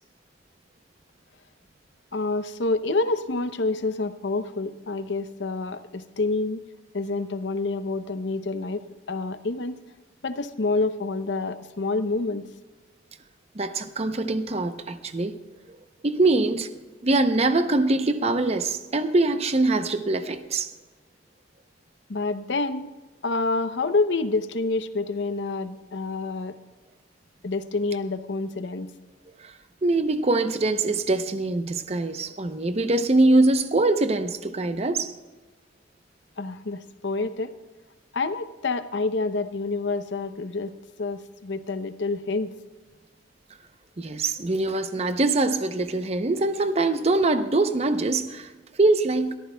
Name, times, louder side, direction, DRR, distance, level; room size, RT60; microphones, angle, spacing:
voice 1, 2.1-6.6 6.9-9.7 10.2-12.4 22.1-22.9 23.2-26.6 27.4-28.9 36.4-37.5 38.1-40.7 41.0-42.5, left 3 dB, 70° left, 0.7 m, -28 dB
voice 2, 13.5-15.4 16.0-16.7 17.0-20.7 29.4-29.5 29.8-35.1 44.0-48.5 48.8-49.3, right 2 dB, 35° right, 0.7 m, -23 dB
22.0 x 14.0 x 2.3 m
head